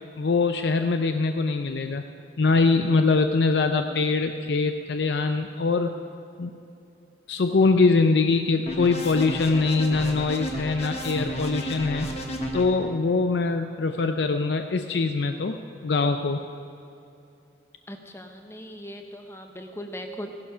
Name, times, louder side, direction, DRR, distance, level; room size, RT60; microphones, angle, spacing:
voice 1, 0.2-2.0 2.4-6.0 6.4-6.5 7.3-12.1 12.5-15.6 15.8-16.4, left 3 dB, 70° left, 7 dB, 0.5 m, -23 dB
sound 1, 8.7-12.6, right 1 dB, 35° left, 1.3 m, -32 dB
voice 2, 17.9-20.3, equal, 15° left, 5 dB, 0.9 m, -39 dB
16.0 x 11.5 x 5.6 m, 2.7 s
head